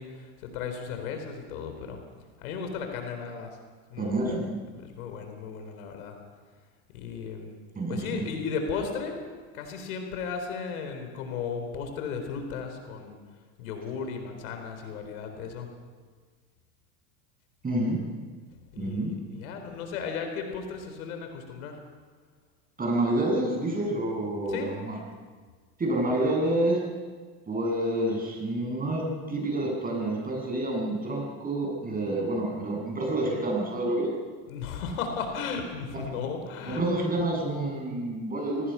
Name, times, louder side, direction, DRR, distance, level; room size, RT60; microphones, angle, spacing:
voice 1, 0.0-2.0 2.4-3.6 3.9-4.4 4.7-6.2 6.9-7.5 7.9-9.2 9.5-13.2 13.6-15.7 18.7-21.8 24.5-24.7 34.5-36.8, left 5 dB, 90° left, 5 dB, 4.1 m, -35 dB
voice 2, 4.0-4.6 7.8-8.3 17.6-18.0 18.8-19.1 22.8-25.0 25.8-26.8 27.5-34.1 36.7-38.7, right 1 dB, 20° right, -1 dB, 7.8 m, -28 dB
25.0 x 19.5 x 5.7 m, 1.5 s
supercardioid pair, 120°, 41 cm